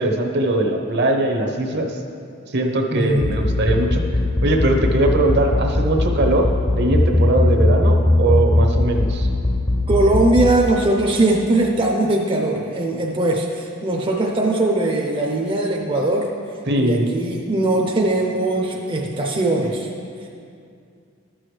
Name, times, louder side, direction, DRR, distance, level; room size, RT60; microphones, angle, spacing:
voice 1, 0.0-2.0 2.5-4.0 4.4-6.5 6.7-9.3 16.7-17.1, right 2 dB, 55° right, 3 dB, 0.8 m, -20 dB
voice 2, 2.9-3.4 9.9-16.3 16.8-19.9 20.2-20.3, right 2 dB, 25° right, 0 dB, 0.5 m, -20 dB
sound 1, 3.1-10.5, left 1 dB, 30° left, 0.7 m, -18 dB
12.5 x 6.2 x 3.2 m, 2.4 s
head